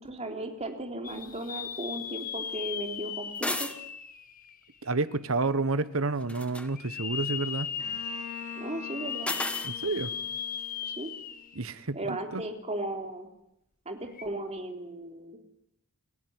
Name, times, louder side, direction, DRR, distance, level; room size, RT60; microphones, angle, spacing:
voice 1, 0.0-3.8 8.6-9.3 10.8-11.1 11.9-13.3 13.9-15.4, right 1 dB, 30° right, 3.6 m, -36 dB
sound 1, 1.0-5.0 5.5-5.6 6.7-11.6 12.0-12.1 14.1-14.2, left 8 dB, 40° left, 1.7 m, -37 dB
sound 2, 3.4-3.8 6.2-6.7 9.3-9.7, left 2 dB, 5° left, 1.5 m, -32 dB
voice 2, 4.8-7.7 9.6-10.1 11.5-12.4, right 3 dB, 65° right, 1.2 m, -30 dB
Bowed string instrument, 7.8-11.5, left 6 dB, 70° left, 6.0 m, -45 dB
29.5 x 16.5 x 9.7 m
head